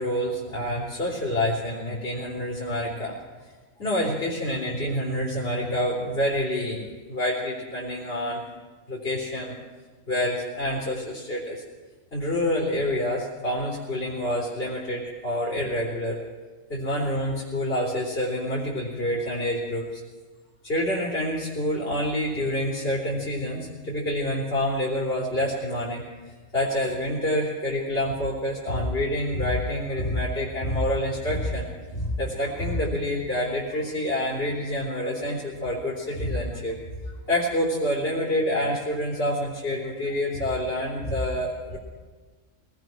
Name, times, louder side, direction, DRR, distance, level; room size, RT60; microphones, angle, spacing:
voice 1, 0.0-3.2 3.8-8.4 8.9-9.6 10.1-11.6 12.1-16.2 16.7-20.0 20.6-36.8 37.0-41.8, left 1 dB, 50° left, -4 dB, 4.2 m, -27 dB
23.0 x 19.0 x 6.2 m, 1.4 s
omnidirectional pair, 1.4 m